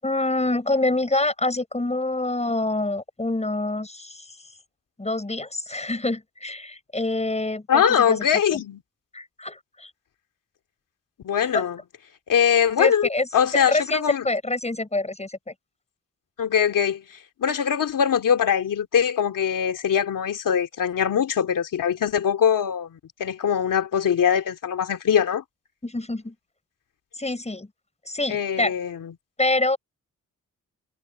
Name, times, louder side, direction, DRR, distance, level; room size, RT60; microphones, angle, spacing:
voice 1, 0.0-4.4 5.0-8.2 8.5-8.6 9.1-9.9 11.5-11.6 12.8-13.3 13.5-15.5 25.8-26.3 27.1-27.7 28.0-28.7 29.4-29.8, left 2 dB, 20° left, 6.6 m, -26 dB
voice 2, 7.7-8.8 11.2-11.8 12.3-14.2 16.4-25.4 28.3-29.1, left 8 dB, 75° left, 2.6 m, -22 dB
cardioid pair, 70°, 32 cm